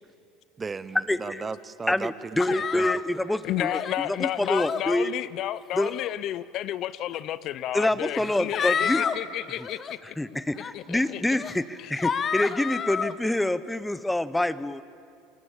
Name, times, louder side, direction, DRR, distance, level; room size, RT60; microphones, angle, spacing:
voice 1, 0.6-2.9, right 4 dB, 25° right, 16 dB, 1.0 m, -36 dB
voice 2, 1.9-5.1 5.7-5.9 7.7-9.0 10.2-14.8, left 1 dB, 5° left, 16 dB, 1.0 m, -26 dB
sound 1, 2.4-3.0 3.6-4.0 4.4-4.8 5.7-6.1 7.1-7.2 8.1-9.2 9.6-9.9 10.6-10.7 11.3-11.6 12.0-13.1, left 6 dB, 35° left, 1.2 m, -29 dB
voice 3, 3.4-10.2 10.7-11.2 11.8-11.9, left 13 dB, 55° left, 17 dB, 0.7 m, -31 dB
29.5 x 21.5 x 7.3 m, 2.4 s
hypercardioid pair, 85°, 0 cm